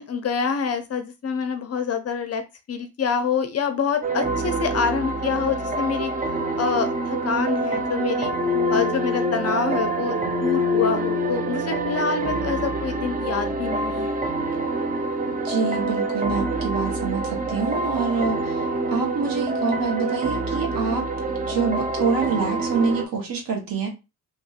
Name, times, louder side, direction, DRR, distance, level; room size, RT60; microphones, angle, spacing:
voice 1, 0.0-2.4 2.7-6.1 6.6-8.3 8.7-14.2, left 6 dB, 40° left, 8 dB, 0.5 m, -26 dB
sound 1, 4.0-23.0, right 1 dB, 20° right, 0.5 m, -26 dB
voice 2, 15.3-18.6 18.9-21.1 21.5-23.9, right 5 dB, 55° right, 1 dB, 1.2 m, -26 dB
2.9 x 2.5 x 2.4 m, 0.27 s
supercardioid pair, 70°, 39 cm